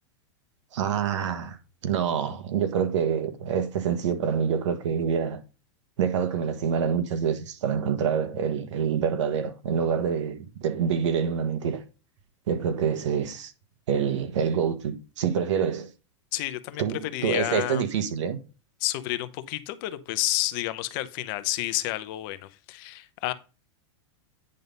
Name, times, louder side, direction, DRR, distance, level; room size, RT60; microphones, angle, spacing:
voice 1, 0.7-1.6 1.8-5.4 6.0-11.8 12.5-13.5 13.9-15.9 16.8-18.4, right 7 dB, 80° right, 1.5 m, -26 dB
voice 2, 16.3-16.8 17.1-17.8 18.8-23.3, left 16 dB, 45° left, 0.8 m, -30 dB
9.5 x 3.9 x 5.3 m
supercardioid pair, 150°, 15 cm